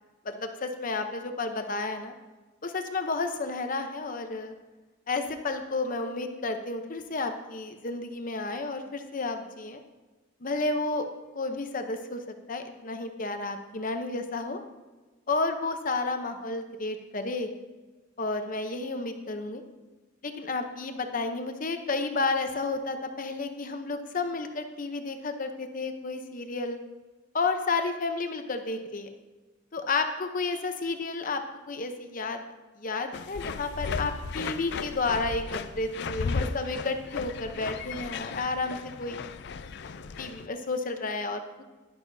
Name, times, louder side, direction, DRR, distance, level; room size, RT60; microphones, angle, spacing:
voice 1, 0.2-2.1 2.6-4.5 5.1-9.8 10.4-11.1 11.3-12.2 12.5-14.6 15.3-17.5 18.2-19.6 20.2-26.8 27.3-29.1 29.7-31.4 31.7-32.4 32.8-39.2 40.2-41.6, left 3 dB, 40° left, 6 dB, 0.8 m, -31 dB
sound 1, 33.1-40.5, left 5 dB, 60° left, 0.4 m, -35 dB
11.5 x 10.5 x 2.7 m, 1.2 s
head